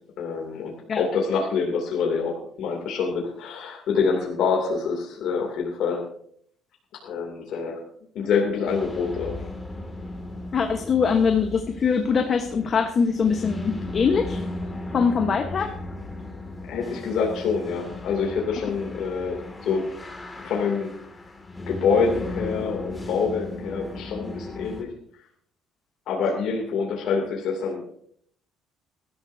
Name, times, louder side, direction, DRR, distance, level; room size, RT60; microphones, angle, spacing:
voice 1, 0.2-6.0 7.0-7.8 8.1-9.4 16.7-19.8 20.4-20.9 21.7-24.9 26.1-28.0, left 5 dB, 70° left, -1 dB, 2.7 m, -26 dB
sound 1, 8.7-24.8, left 2 dB, 15° left, 2.3 m, -36 dB
voice 2, 10.5-14.4 14.9-15.7, left 6 dB, 40° left, 5 dB, 1.2 m, -22 dB
20.0 x 13.0 x 2.7 m, 0.64 s
cardioid pair, 120°, 0 cm